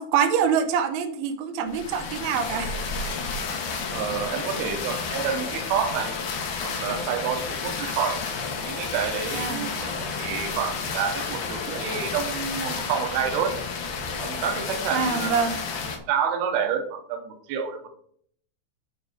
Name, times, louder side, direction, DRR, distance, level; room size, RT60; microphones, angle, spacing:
voice 1, 0.0-2.7 9.3-9.7 14.9-15.6, right 7 dB, 85° right, 7 dB, 3.3 m, -25 dB
sound 1, 1.7-16.0, left 5 dB, 75° left, 1.8 m, -31 dB
voice 2, 3.9-6.1 6.6-8.3 8.6-13.6 14.2-15.5 16.1-17.9, right 7 dB, 70° right, 5 dB, 2.6 m, -29 dB
9.1 x 4.1 x 6.5 m, 0.63 s
omnidirectional pair, 5.5 m